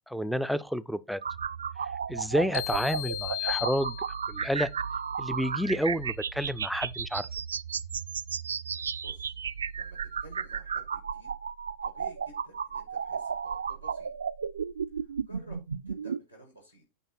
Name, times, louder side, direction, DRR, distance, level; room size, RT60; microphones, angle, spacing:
voice 1, 0.1-1.2 2.1-4.0 4.3-4.7 5.2-7.3, equal, ahead, 0.5 m, -29 dB
sound 1, 1.2-16.2, right 6 dB, 70° right, 0.4 m, -34 dB
sound 2, 2.5-4.5, left 16 dB, 55° left, 0.6 m, -35 dB
voice 2, 8.7-9.4 9.8-11.3 11.8-14.1 15.0-15.6 15.9-16.8, right 1 dB, 85° left, 5.5 m, -53 dB
8.9 x 5.8 x 4.3 m
figure-of-eight pair, 90°, 0 cm